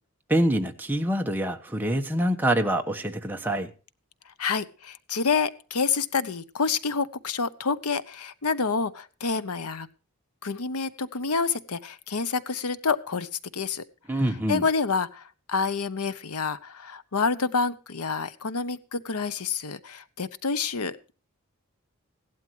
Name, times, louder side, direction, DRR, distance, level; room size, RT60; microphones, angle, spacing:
voice 1, 0.3-3.7 14.1-14.6, right 1 dB, 10° right, 3 dB, 1.2 m, -25 dB
voice 2, 4.4-9.9 10.4-13.8 14.5-21.1, left 5 dB, 90° left, 14 dB, 0.9 m, -28 dB
16.5 x 12.0 x 3.2 m, 0.37 s
head